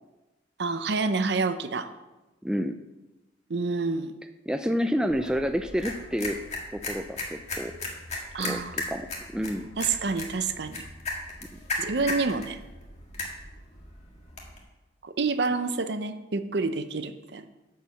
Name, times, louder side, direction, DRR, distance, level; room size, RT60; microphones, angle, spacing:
voice 1, 0.6-1.9 3.5-4.1 8.3-8.9 9.8-10.8 11.8-12.6 15.0-17.5, right 4 dB, 60° right, 10 dB, 0.6 m, -28 dB
voice 2, 2.4-2.8 4.5-6.4 6.7-7.7 8.4-9.6, equal, 5° right, 7 dB, 0.3 m, -29 dB
sound 1, 5.1-14.6, left 2 dB, 35° left, 1.8 m, -37 dB
10.5 x 4.8 x 7.0 m, 1.1 s
head